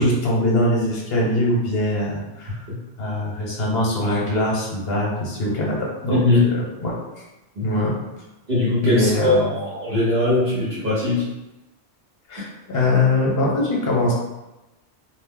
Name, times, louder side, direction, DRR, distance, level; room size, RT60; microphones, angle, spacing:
voice 1, 0.0-2.6 3.0-6.9 7.6-7.9 8.8-9.5 12.3-14.1, left 1 dB, 60° left, -3 dB, 1.0 m, -22 dB
voice 2, 8.5-11.2, left 2 dB, 55° right, -10 dB, 1.1 m, -20 dB
2.5 x 2.0 x 3.6 m, 1.0 s
omnidirectional pair, 1.2 m